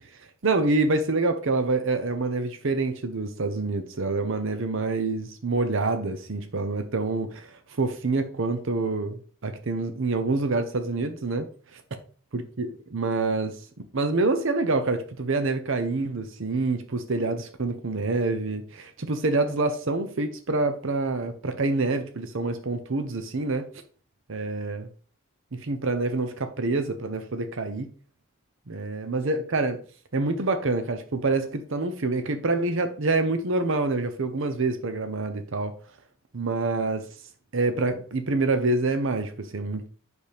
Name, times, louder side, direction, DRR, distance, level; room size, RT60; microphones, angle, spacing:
voice 1, 0.0-11.8 12.3-13.6 13.9-23.7 24.3-24.9 25.5-27.9 28.7-29.8 30.1-35.7 36.3-37.1 37.5-39.9, right 3 dB, 65° right, 0.8 m, -27 dB
8.0 x 6.3 x 3.4 m
head